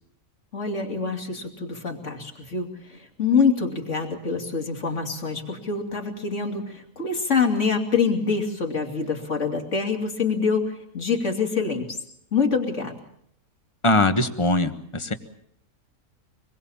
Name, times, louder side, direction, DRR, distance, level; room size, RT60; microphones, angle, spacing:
voice 1, 0.5-12.0 12.3-13.0, left 5 dB, 55° left, 3 dB, 3.2 m, -25 dB
voice 2, 13.8-15.1, left 2 dB, 20° left, 9 dB, 1.3 m, -21 dB
26.0 x 21.0 x 7.2 m, 0.71 s
omnidirectional pair, 1.5 m